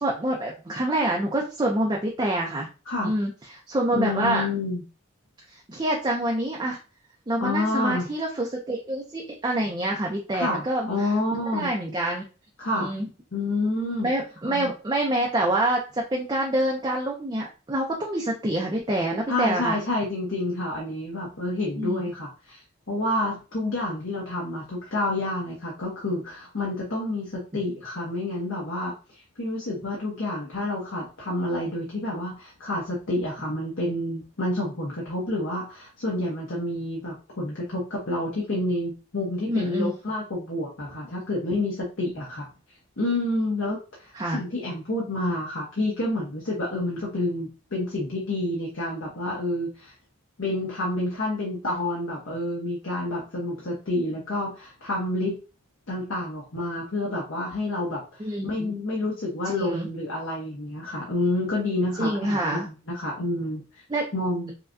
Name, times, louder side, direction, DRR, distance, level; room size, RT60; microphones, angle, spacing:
voice 1, 0.0-2.7 3.0-4.5 5.5-6.8 7.3-11.1 11.5-12.2 12.7-13.1 14.0-19.8 21.8-22.1 39.5-39.9 44.1-44.4 58.2-58.7 59.5-59.9 62.0-62.7 63.9-64.1, right 1 dB, 20° right, -1 dB, 0.5 m, -26 dB
voice 2, 3.9-4.8 7.4-8.1 10.3-11.7 12.6-12.9 13.3-14.1 14.4-14.7 19.3-42.5 43.0-49.9 50.4-55.4 55.9-58.0 58.4-63.8 64.1-64.5, left 2 dB, 70° left, -3 dB, 1.0 m, -29 dB
5.5 x 2.2 x 2.6 m, 0.34 s
head